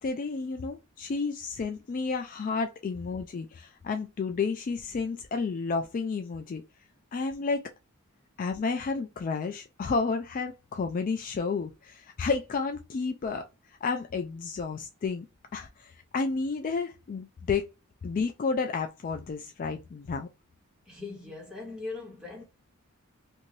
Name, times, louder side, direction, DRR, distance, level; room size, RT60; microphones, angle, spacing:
voice 1, 0.0-6.6 7.1-7.7 8.4-13.5 13.8-15.3 15.5-17.7 18.0-20.3, left 4 dB, 40° left, 0.3 m, -31 dB
voice 2, 20.8-22.4, left 3 dB, 5° right, 1.5 m, -40 dB
2.7 x 2.6 x 3.0 m
head